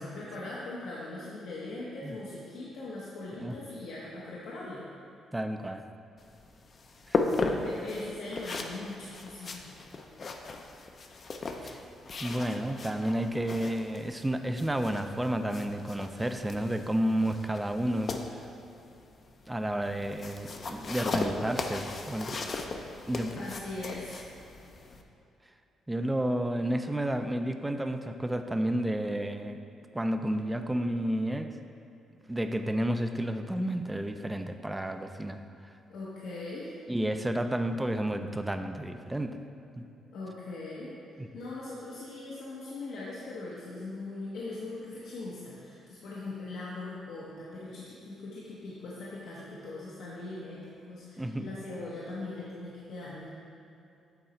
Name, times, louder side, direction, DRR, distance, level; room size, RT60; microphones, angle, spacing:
voice 1, 0.0-4.9 7.3-9.7 23.4-24.2 35.9-36.7 40.1-41.0 41.3-53.3, left 2 dB, 80° left, -7 dB, 0.9 m, -40 dB
voice 2, 5.3-5.9 7.1-7.3 11.6-11.8 12.2-18.5 19.5-22.4 23.1-23.4 25.9-29.6 29.9-31.6 32.3-35.7 36.9-39.4 39.7-39.9 41.2-41.3 51.2-51.5, right 1 dB, 10° right, 7 dB, 0.4 m, -31 dB
sound 1, 6.2-25.0, left 3 dB, 45° left, 0.5 m, -37 dB
7.9 x 3.8 x 4.3 m, 2.7 s
cardioid pair, 90°, 0 cm